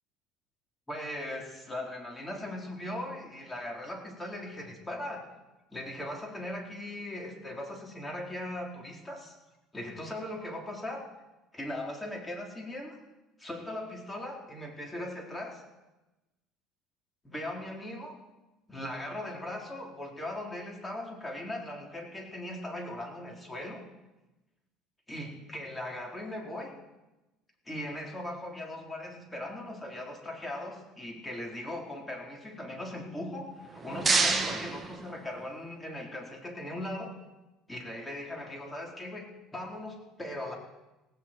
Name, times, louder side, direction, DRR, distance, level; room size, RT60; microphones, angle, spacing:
voice 1, 0.9-5.3 5.7-9.3 9.7-11.0 11.5-13.0 13.4-15.6 17.2-18.2 18.7-23.8 25.1-26.7 27.7-37.1 37.7-40.5, left 1 dB, 15° left, 0 dB, 4.1 m, -39 dB
sound 1, 33.5-35.7, right 4 dB, 20° right, 1.9 m, -29 dB
17.5 x 16.5 x 4.5 m, 1.0 s
supercardioid pair, 100°, 0 cm